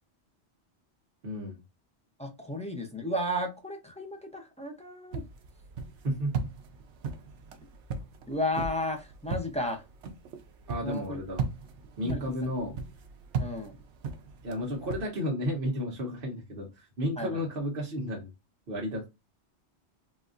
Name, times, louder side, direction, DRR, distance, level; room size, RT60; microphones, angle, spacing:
voice 1, 1.2-1.6 6.0-6.5 10.7-11.4 12.0-12.8 14.4-18.3 18.7-19.1, equal, 55° right, -2 dB, 1.1 m, -32 dB
voice 2, 2.2-5.2 8.3-9.8 10.8-11.2 12.0-12.2 13.4-13.7 17.2-17.4, left 1 dB, 10° left, 3 dB, 0.3 m, -33 dB
sound 1, 5.1-15.1, right 5 dB, 80° right, 0.9 m, -38 dB
4.0 x 2.5 x 2.5 m, 0.24 s
omnidirectional pair, 1.2 m